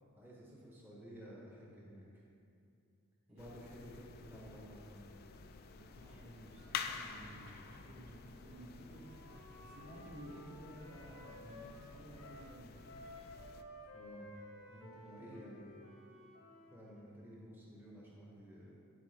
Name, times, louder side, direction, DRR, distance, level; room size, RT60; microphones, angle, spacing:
voice 1, 0.2-2.2 3.3-5.1 13.9-14.3 15.0-15.8 16.7-18.8, equal, 10° right, -5 dB, 0.9 m, -53 dB
voice 2, 3.3-3.6 5.7-9.1 9.6-12.7 14.7-15.5 16.9-17.0, equal, 75° right, -6 dB, 1.9 m, -54 dB
sound 1, 3.4-13.6, left 6 dB, 45° left, 0.3 m, -49 dB
sound 2, 6.4-12.3, right 1 dB, 55° right, 0.8 m, -64 dB
Wind instrument woodwind instrument, 8.8-12.5 12.8-16.9, left 1 dB, 80° left, 1.2 m, -55 dB
11.5 x 4.6 x 3.2 m, 2.5 s
head